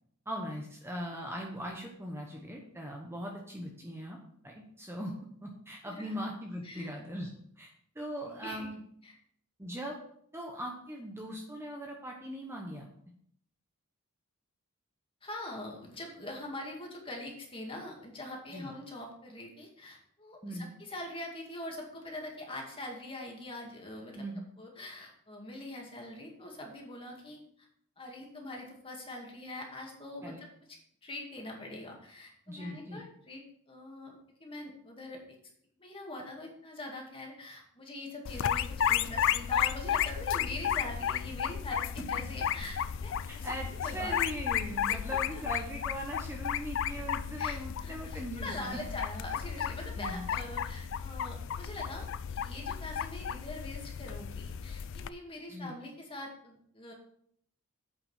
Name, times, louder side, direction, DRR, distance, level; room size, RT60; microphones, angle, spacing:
voice 1, 0.3-4.2 4.4-5.1 5.4-7.3 7.6-7.7 7.9-8.8 9.6-10.0 10.3-12.9 18.5-18.7 20.4-20.8 24.2-24.4 30.2-30.4 32.5-33.0 43.2-48.8 50.0-50.3 55.5-55.8, equal, 10° right, 0 dB, 1.0 m, -40 dB
voice 2, 8.3-8.7 9.0-9.1 15.2-24.3 24.6-27.7 28.0-30.5 31.0-34.1 34.4-35.2 35.8-43.5 43.8-44.2 44.9-45.4 47.4-56.9, left 1 dB, 25° left, 0 dB, 2.2 m, -43 dB
sound 1, 38.2-55.1, left 9 dB, 60° left, 0.4 m, -33 dB
8.5 x 5.8 x 5.6 m, 0.67 s
head